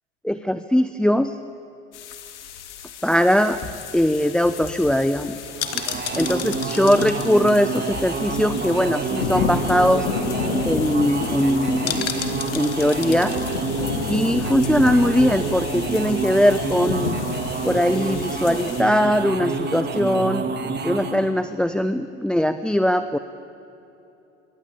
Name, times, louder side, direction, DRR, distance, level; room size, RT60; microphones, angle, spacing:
voice 1, 0.2-1.4 3.0-3.6 3.9-5.3 6.2-10.1 10.7-12.1 12.5-13.4 14.1-17.2 17.6-20.5 20.8-23.2, equal, ahead, 11 dB, 0.8 m, -20 dB
sound 1, 1.9-18.8, left 6 dB, 70° left, 2.7 m, -32 dB
sound 2, 3.5-8.8 9.1-9.2 9.4-9.7 10.1-10.2 10.4-10.8 11.9-13.6 13.9-14.0, left 9 dB, 45° left, 2.8 m, -34 dB
sound 3, 5.5-21.3, right 4 dB, 30° right, 3.2 m, -28 dB
27.0 x 24.0 x 8.5 m, 3.0 s
figure-of-eight pair, 75°, 36 cm